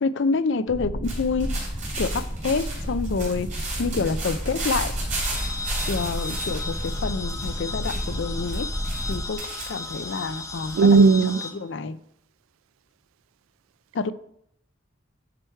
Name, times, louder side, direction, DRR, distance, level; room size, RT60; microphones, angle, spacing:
voice 1, 0.0-1.6 2.0-4.9 5.9-8.7 9.1-11.0 11.5-12.0 13.9-14.1, left 4 dB, 60° left, 0.5 m, -27 dB
sound 1, 0.7-9.3, equal, 15° right, 1.8 m, -31 dB
sound 2, 1.0-10.9, right 3 dB, 40° right, 3.2 m, -36 dB
sound 3, 5.2-11.5, left 3 dB, 15° left, 1.0 m, -35 dB
voice 2, 10.7-11.4, right 4 dB, 80° right, 0.3 m, -15 dB
11.0 x 4.7 x 4.5 m
head